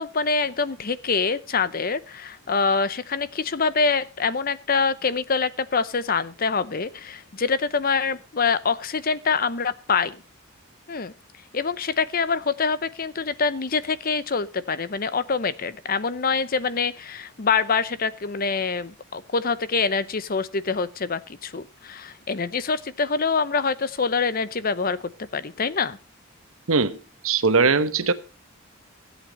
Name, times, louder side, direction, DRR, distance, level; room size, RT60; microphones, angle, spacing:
voice 1, 0.0-10.2 10.9-11.1 11.5-25.0 25.3-26.0, left 5 dB, 45° left, 0.7 m, -25 dB
voice 2, 26.7-27.0 27.2-28.1, right 4 dB, 80° right, 1.1 m, -20 dB
16.5 x 8.2 x 5.2 m
head